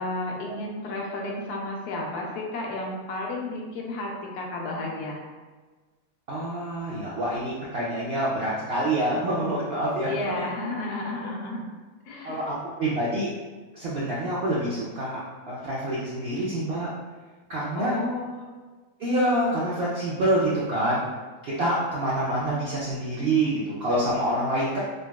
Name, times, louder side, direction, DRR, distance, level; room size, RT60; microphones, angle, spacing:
voice 1, 0.0-5.2 10.1-11.6 12.0-12.5 17.7-18.5, left 2 dB, 85° left, -1 dB, 1.2 m, -32 dB
voice 2, 6.3-10.4 12.2-13.3 13.7-15.2 15.5-16.9 17.5-18.0 19.0-21.0 21.4-24.8, right 1 dB, 75° right, -6 dB, 0.5 m, -26 dB
3.8 x 2.2 x 2.2 m, 1.3 s
omnidirectional pair, 1.6 m